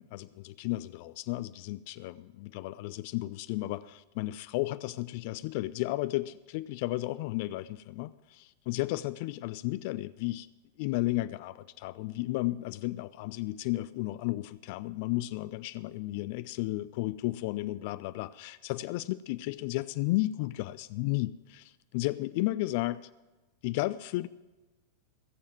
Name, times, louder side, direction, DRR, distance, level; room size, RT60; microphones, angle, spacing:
voice 1, 0.0-10.5 10.8-23.0 23.6-24.3, left 18 dB, 50° left, 16 dB, 0.3 m, -33 dB
16.5 x 7.1 x 7.5 m, 1.1 s
figure-of-eight pair, 90°, 0 cm